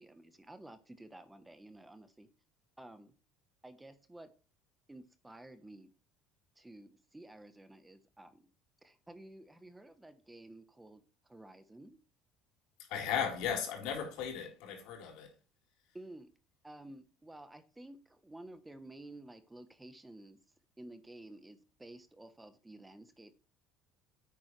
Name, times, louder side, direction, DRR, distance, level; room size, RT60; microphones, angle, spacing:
voice 1, 0.0-2.3 2.8-3.1 3.6-4.3 4.9-5.9 6.6-8.5 8.8-12.0 15.9-16.3 16.6-20.4 20.8-23.4, right 1 dB, 10° right, 1.1 m, -52 dB
voice 2, 12.9-15.3, left 7 dB, 70° left, 4.1 m, -36 dB
9.8 x 8.6 x 3.3 m
supercardioid pair, 105°, 0 cm